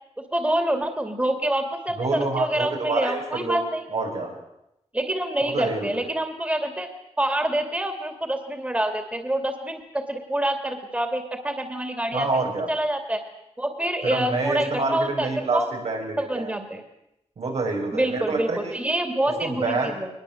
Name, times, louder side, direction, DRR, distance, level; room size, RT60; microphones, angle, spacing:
voice 1, 0.2-3.8 4.9-6.9 7.2-13.2 13.6-15.7 16.2-16.8 17.9-20.1, right 1 dB, 10° right, 5 dB, 2.6 m, -26 dB
voice 2, 2.0-3.6 3.9-4.3 5.4-5.9 12.1-12.7 14.0-16.5 17.4-18.7 19.4-19.9, right 3 dB, 80° right, 0 dB, 6.7 m, -27 dB
22.0 x 21.0 x 7.9 m, 0.86 s
wide cardioid pair, 120°, 11 cm